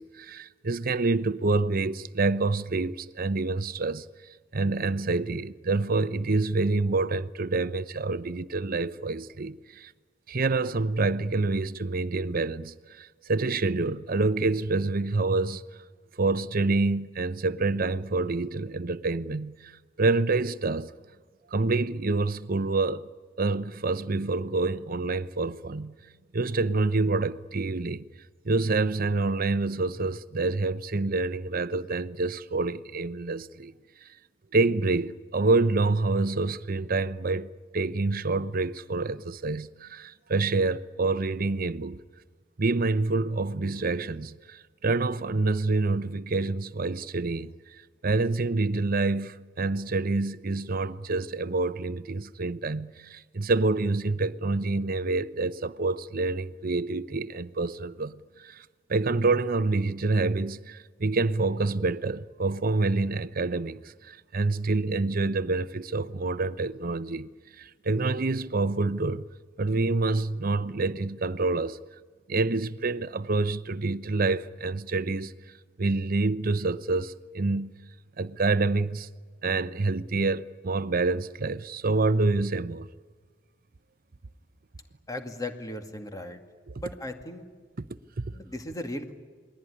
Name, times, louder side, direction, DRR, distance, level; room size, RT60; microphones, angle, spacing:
voice 1, 0.0-4.1 4.5-9.9 10.3-15.6 16.2-19.7 20.0-20.9 21.5-23.1 23.4-25.9 26.3-28.0 28.4-33.7 34.5-42.0 42.6-47.5 48.0-58.6 58.9-67.3 67.6-69.2 69.6-71.8 72.3-75.3 75.8-77.7 78.2-79.1 79.4-82.9 86.7-86.8 88.2-88.3, right 3 dB, 50° right, 0.8 m, -27 dB
voice 2, 85.1-86.4 86.8-87.5 88.3-89.1, left 1 dB, 20° left, 2.2 m, -36 dB
28.0 x 21.0 x 9.9 m
head